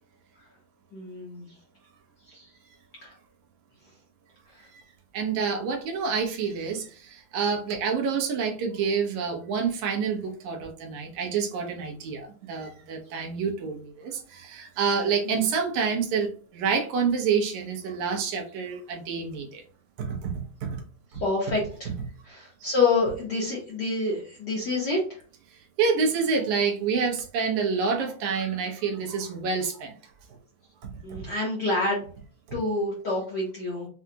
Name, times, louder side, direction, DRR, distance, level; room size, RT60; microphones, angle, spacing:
voice 1, 0.9-1.5 2.3-2.4 3.0-3.1 15.3-15.4 21.2-21.9 22.2-25.0 31.0-32.0 32.5-33.9, left 3 dB, 55° left, -5 dB, 1.2 m, -27 dB
voice 2, 5.1-19.6 20.0-20.3 20.6-20.8 21.1-21.2 25.5-29.9 31.1-31.2, right 5 dB, 80° right, 2 dB, 2.3 m, -28 dB
6.3 x 2.3 x 2.8 m, 0.41 s
omnidirectional pair, 3.3 m